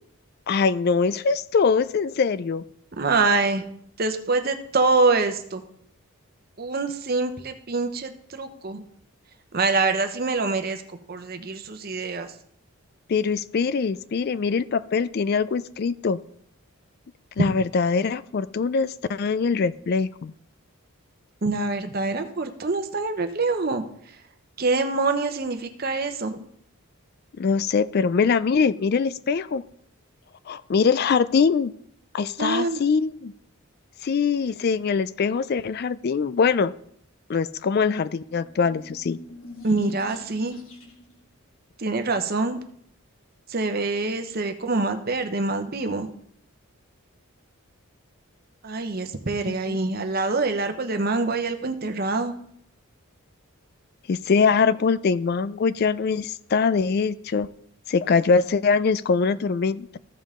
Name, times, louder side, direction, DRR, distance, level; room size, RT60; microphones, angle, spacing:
voice 1, 0.5-2.6 13.1-16.2 17.4-20.3 27.4-29.6 30.5-31.7 32.1-33.3 34.0-36.7 37.3-39.2 49.5-49.8 54.1-57.5 57.9-60.0, left 5 dB, 45° left, 16 dB, 0.3 m, -23 dB
voice 2, 2.9-3.6 4.0-5.6 6.6-8.8 9.5-10.8 11.1-12.3 21.4-23.8 24.6-26.4 32.4-32.8 39.6-40.6 41.8-42.6 43.5-46.1 48.6-52.3, right 3 dB, 45° right, 7 dB, 0.8 m, -25 dB
sound 1, 38.3-41.2, left 1 dB, 65° left, 1.7 m, -45 dB
14.5 x 5.4 x 3.7 m, 0.67 s
head